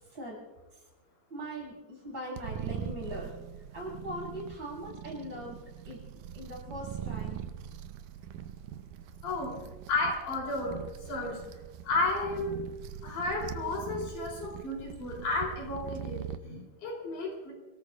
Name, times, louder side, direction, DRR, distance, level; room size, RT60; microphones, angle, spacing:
voice 1, 1.3-3.3 3.7-5.6 5.8-6.0 6.3-7.4, equal, 35° right, -4 dB, 8.2 m, -40 dB
sound 1, 2.4-16.4, right 9 dB, 80° right, 2.0 m, -42 dB
voice 2, 9.2-9.5 9.9-10.8 11.1-11.4 11.8-12.5 13.0-17.5, left 3 dB, 70° left, -2 dB, 5.1 m, -32 dB
29.5 x 18.0 x 2.5 m, 1.2 s
omnidirectional pair, 3.7 m